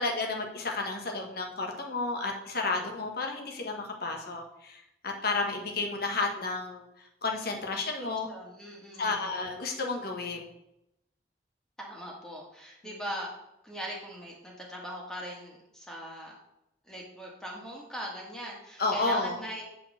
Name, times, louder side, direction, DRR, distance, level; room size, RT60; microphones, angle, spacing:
voice 1, 0.0-8.3 9.0-10.5 18.8-19.4, left 3 dB, 55° left, 2 dB, 1.4 m, -32 dB
voice 2, 8.0-9.3 11.8-13.3 13.6-16.4 16.9-19.6, equal, 5° left, -2 dB, 1.8 m, -40 dB
7.5 x 4.6 x 6.6 m, 0.85 s
head